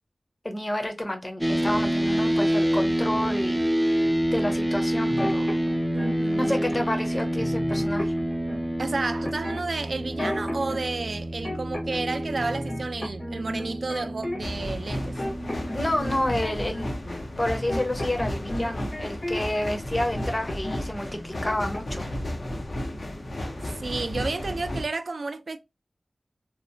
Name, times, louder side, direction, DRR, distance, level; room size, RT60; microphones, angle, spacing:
voice 1, 0.4-3.6 4.3-5.5 6.4-8.1 15.7-16.9 17.4-22.1, left 1 dB, 30° left, 0.7 m, -29 dB
sound 1, 1.4-16.5, equal, 10° right, 0.4 m, -27 dB
sound 2, 5.1-6.1 6.7-7.1 7.4-8.6 9.2-10.8 11.1-12.1 12.4-14.6 14.9-19.8 20.1-20.8 21.1-22.1 22.4-22.7, left 1 dB, 55° left, 1.1 m, -34 dB
voice 2, 5.9-6.6 8.8-15.2 23.8-25.6, right 3 dB, 80° right, 0.3 m, -31 dB
sound 3, 14.4-24.8, left 1 dB, 70° left, 0.6 m, -33 dB
2.8 x 2.0 x 2.5 m
wide cardioid pair, 60°, 0 cm